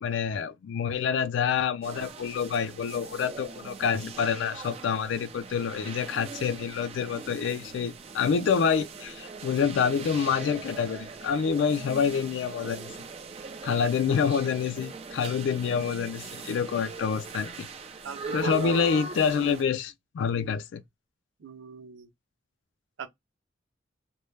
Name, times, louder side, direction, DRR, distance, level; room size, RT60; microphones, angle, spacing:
voice 1, 0.0-13.0 13.6-17.7 18.3-20.8, left 6 dB, 75° left, 0.3 m, -27 dB
sound 1, 1.8-19.6, right 4 dB, 30° right, 0.3 m, -41 dB
voice 2, 18.0-18.8 21.4-22.1 23.0-23.1, right 5 dB, 90° right, 0.5 m, -38 dB
2.1 x 2.1 x 3.1 m
head